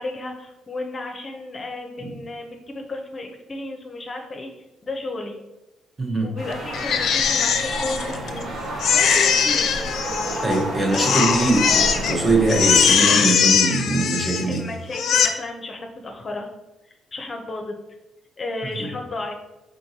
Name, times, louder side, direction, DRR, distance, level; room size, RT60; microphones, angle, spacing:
voice 1, 0.0-4.5 4.8-5.4 6.2-9.7 10.8-11.0 14.4-16.5 17.1-17.7 18.4-19.4, left 2 dB, 35° left, 2 dB, 0.7 m, -33 dB
voice 2, 6.0-6.3 10.4-14.7 18.8-18.9, right 2 dB, 25° right, 0 dB, 1.0 m, -22 dB
sound 1, 6.4-12.9, right 1 dB, 70° right, 1.5 m, -31 dB
Crying sobbing, 6.7-8.4 8.8-10.6 10.9-12.2 12.5-14.6 14.9-15.3, left 7 dB, 70° left, 0.4 m, -20 dB
4.4 x 3.9 x 2.8 m, 0.98 s
cardioid pair, 90°, 0 cm